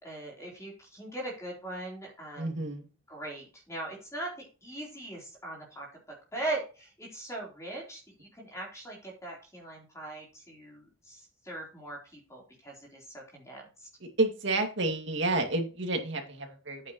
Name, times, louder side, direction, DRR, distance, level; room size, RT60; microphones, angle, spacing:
voice 1, 0.0-2.7 3.1-5.9 6.3-13.9, right 2 dB, 15° left, -1 dB, 3.9 m, -40 dB
voice 2, 2.4-2.9 14.0-16.8, right 2 dB, 65° right, 3 dB, 2.4 m, -30 dB
9.6 x 9.0 x 3.1 m, 0.34 s
head